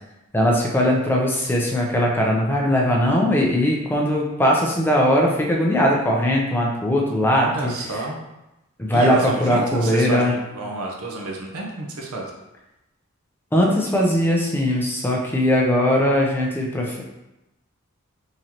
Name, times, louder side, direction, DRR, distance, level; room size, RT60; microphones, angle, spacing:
voice 1, 0.3-7.7 8.8-10.4 13.5-17.0, equal, 10° left, -2 dB, 0.5 m, -20 dB
voice 2, 7.3-8.2 8.9-12.3, right 2 dB, 75° right, 0 dB, 0.7 m, -29 dB
3.9 x 3.0 x 2.8 m, 0.93 s
head